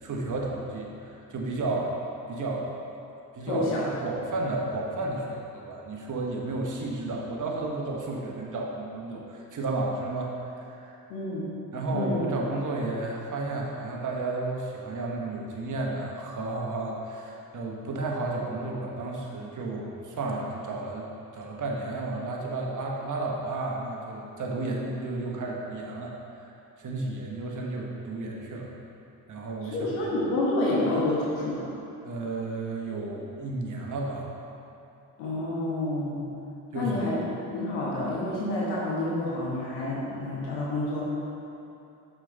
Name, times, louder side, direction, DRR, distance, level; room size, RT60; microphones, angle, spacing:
voice 1, 0.0-1.9 2.2-3.0 3.3-10.3 10.8-11.0 11.7-26.1 26.8-28.7 29.3-30.1 32.0-34.4 36.7-37.2, right 2 dB, 40° right, -2 dB, 1.3 m, -32 dB
voice 2, 3.5-3.8 11.1-11.4 11.9-12.2 29.6-31.6 35.2-36.2 36.7-37.2 37.5-41.0, left 2 dB, 75° left, -6 dB, 1.4 m, -28 dB
6.2 x 5.6 x 3.9 m, 2.8 s
hypercardioid pair, 50°, 46 cm